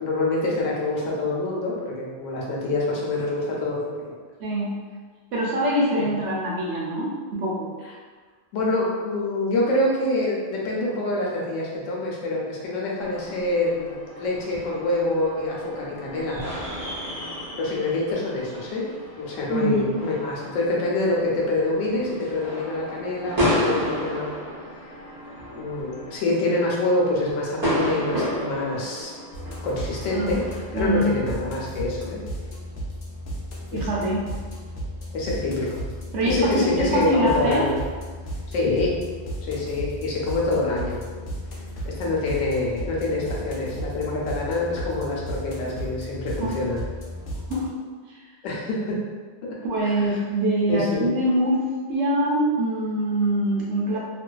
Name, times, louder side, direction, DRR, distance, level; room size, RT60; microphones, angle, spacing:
voice 1, 0.0-4.2 6.0-6.1 8.5-16.4 17.6-18.8 19.2-24.4 25.5-29.1 29.6-32.2 33.7-34.1 35.1-35.8 36.2-37.7 38.5-39.0 39.4-41.0 41.8-46.8 48.4-49.0 49.8-50.2 50.7-51.1, left 2 dB, 90° left, -3 dB, 1.0 m, -26 dB
voice 2, 4.4-4.8 5.3-7.7 19.5-20.0 30.1-30.3 30.7-31.1 33.7-34.3 36.1-37.7 46.4-46.6 47.5-47.7 48.1-48.2 49.6-51.6 51.9-54.0, right 1 dB, 75° right, -5 dB, 0.9 m, -24 dB
sound 1, 13.0-30.7, equal, 25° right, 0.5 m, -32 dB
sound 2, 29.3-47.7, equal, 60° left, 0.6 m, -34 dB
2.5 x 2.2 x 2.2 m, 1.5 s
omnidirectional pair, 1.3 m